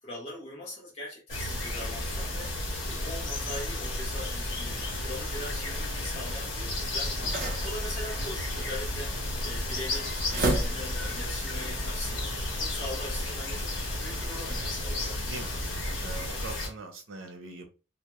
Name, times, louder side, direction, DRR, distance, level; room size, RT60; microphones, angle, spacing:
voice 1, 0.0-2.6 2.9-15.2, left 1 dB, 30° left, 0.5 m, -41 dB
sound 1, 1.3-16.7, left 1 dB, 70° left, 0.9 m, -33 dB
sound 2, 4.0-11.2, right 1 dB, 45° right, 0.5 m, -36 dB
voice 2, 15.2-15.5 16.0-17.7, right 2 dB, 85° right, 0.6 m, -41 dB
2.1 x 2.0 x 2.9 m
head